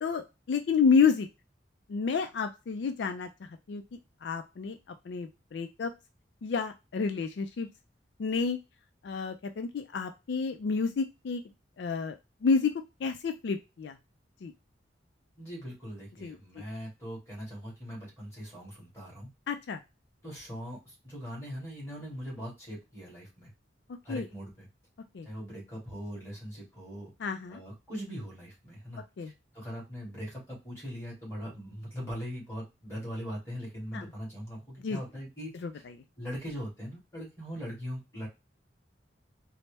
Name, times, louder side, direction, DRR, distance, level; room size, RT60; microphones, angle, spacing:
voice 1, 0.0-1.3 1.9-4.8 5.1-5.9 6.4-7.7 8.2-8.6 9.0-11.4 11.8-12.7 13.0-14.0 14.4-14.5 16.2-16.4 19.5-19.8 23.9-24.3 25.1-25.3 27.2-27.6 29.2-29.3 33.9-34.1 34.8-35.0 35.6-35.7, left 5 dB, 70° left, 7 dB, 0.3 m, -30 dB
voice 2, 15.4-19.3 20.2-23.5 24.0-24.7 25.2-27.1 27.5-29.0 29.5-35.8 36.2-38.3, equal, 15° left, -4 dB, 2.0 m, -41 dB
4.1 x 2.0 x 3.3 m, 0.25 s
head